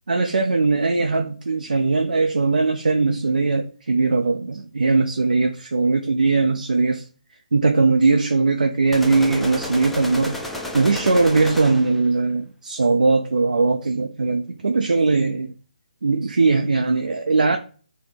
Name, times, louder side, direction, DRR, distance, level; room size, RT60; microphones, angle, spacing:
voice 1, 0.1-7.0 7.5-10.4 10.7-15.5 16.0-17.6, right 3 dB, 75° right, 0.4 m, -20 dB
sound 1, 8.9-12.1, left 1 dB, ahead, 0.4 m, -31 dB
4.0 x 2.1 x 3.4 m
figure-of-eight pair, 145°, 4 cm